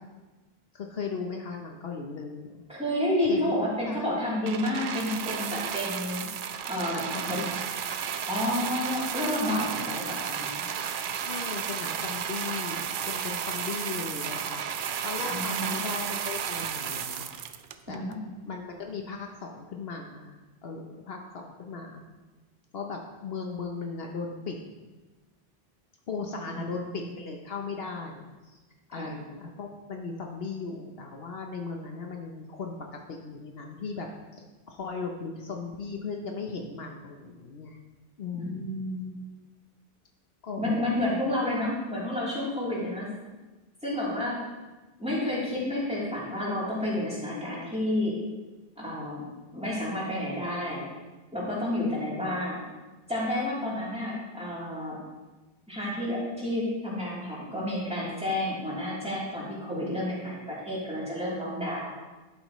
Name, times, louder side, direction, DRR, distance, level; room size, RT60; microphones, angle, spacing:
voice 1, 0.7-2.6 3.2-3.5 3.9-4.0 6.5-6.7 6.9-7.5 11.2-14.6 15.0-17.3 17.9-18.0 18.4-20.3 20.6-22.0 22.7-24.5 26.1-28.6 28.9-32.7 33.1-34.1 34.3-37.8 38.2-38.7 40.4-40.8, left 4 dB, 70° left, 2 dB, 1.1 m, -37 dB
voice 2, 2.7-6.3 6.6-7.4 8.2-10.6 15.2-15.8 17.9-18.2 26.4-27.1 28.9-29.2 38.3-39.1 40.6-43.1 43.8-44.4 45.0-48.2 48.8-49.2 49.5-50.8 51.3-52.6 53.1-55.0 55.7-61.9, left 1 dB, 5° right, -8 dB, 3.3 m, -30 dB
sound 1, 4.5-18.1 18.9-19.0, right 8 dB, 60° right, 0.6 m, -33 dB
11.5 x 8.6 x 3.1 m, 1.2 s
omnidirectional pair, 1.1 m